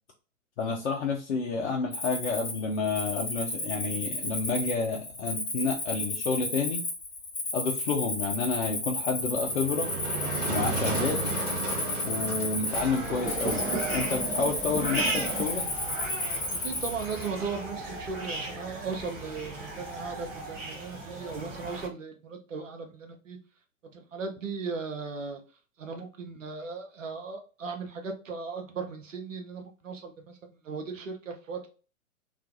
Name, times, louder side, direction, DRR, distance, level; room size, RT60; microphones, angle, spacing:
voice 1, 0.6-6.9 7.5-9.9 10.5-11.2 12.0-15.7, left 4 dB, 60° left, 1 dB, 0.5 m, -30 dB
Cricket, 1.9-17.3, left 2 dB, 35° left, 1.3 m, -33 dB
Motor vehicle (road), 9.2-21.8, right 3 dB, 45° right, 1.2 m, -38 dB
sound 1, 12.7-21.9, right 2 dB, 15° right, 0.6 m, -35 dB
voice 2, 16.5-23.4 23.9-25.4 25.8-30.4 30.6-31.7, right 5 dB, 70° right, 4 dB, 0.7 m, -37 dB
2.4 x 2.2 x 2.5 m, 0.36 s
figure-of-eight pair, 110°, 40 cm